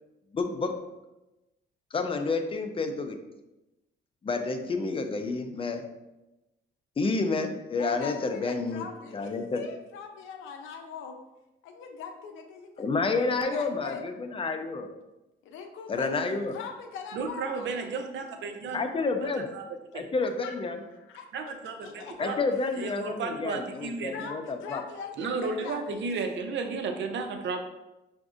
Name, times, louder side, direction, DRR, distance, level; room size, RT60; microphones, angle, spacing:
voice 1, 0.3-0.7 1.9-3.2 4.2-5.8 7.0-8.8 9.1-9.6 12.8-14.9 15.9-16.6 18.7-19.5 19.9-20.8 22.2-24.8, left 3 dB, 25° left, 6 dB, 0.5 m, -29 dB
voice 2, 7.8-11.2 11.6-14.0 15.4-17.9 20.4-20.6 20.9-22.4 24.1-26.3 26.6-26.7, left 6 dB, 90° left, 5 dB, 0.5 m, -42 dB
voice 3, 17.1-18.8 19.2-19.6 19.9-20.0 21.3-22.4 22.8-24.3 25.2-27.6, right 4 dB, 65° right, 5 dB, 0.6 m, -33 dB
5.8 x 2.6 x 2.4 m, 1.0 s
cardioid pair, 90°, 20 cm